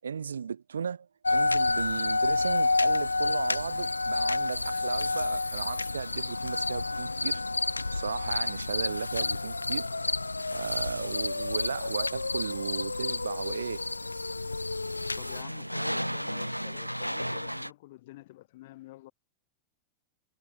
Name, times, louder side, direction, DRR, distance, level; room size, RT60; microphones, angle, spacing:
voice 1, 0.0-7.4 7.9-9.9 10.5-13.8, right 7 dB, 70° right, 7.5 m, -35 dB
sound 1, 1.2-15.4, left 3 dB, 80° left, 2.2 m, -29 dB
sound 2, 1.6-17.7, equal, 90° right, 3.4 m, -41 dB
voice 2, 15.2-19.1, left 18 dB, 50° left, 5.6 m, -49 dB
figure-of-eight pair, 90°, 0 cm